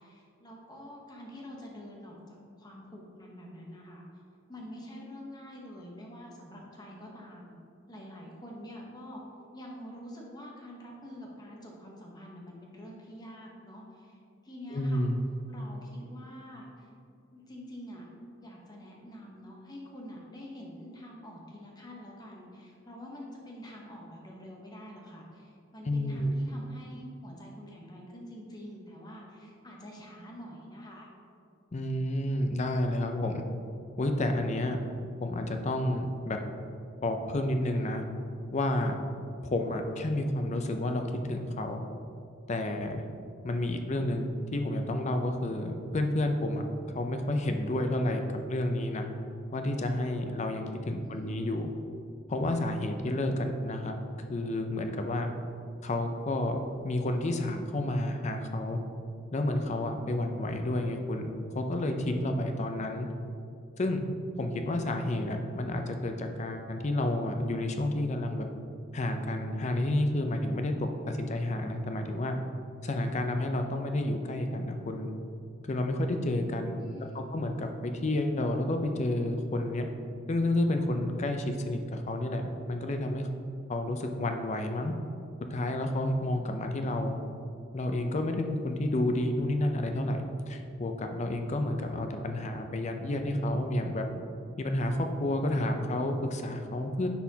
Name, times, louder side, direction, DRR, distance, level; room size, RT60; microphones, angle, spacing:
voice 1, 0.0-4.0 4.5-7.5 7.9-9.2 9.5-14.2 14.4-15.1 15.5-16.9 17.3-18.1 18.4-31.1 50.8-51.3 76.8-77.2, equal, 20° left, -2 dB, 0.9 m, -46 dB
voice 2, 14.7-15.2 25.9-26.3 31.7-33.4 34.0-34.8 35.2-36.4 37.0-38.0 38.5-39.0 39.4-41.8 42.5-43.0 43.4-46.6 46.9-49.1 49.5-51.7 52.3-53.9 54.3-55.3 55.8-58.8 59.3-63.1 63.8-64.1 64.4-68.5 68.9-72.4 72.8-75.1 75.6-76.8 77.1-79.9 80.3-83.3 83.7-84.9 85.5-87.2 87.7-94.1 94.6-97.1, left 1 dB, 35° left, 5 dB, 0.5 m, -30 dB
9.5 x 4.2 x 2.8 m, 2.5 s
head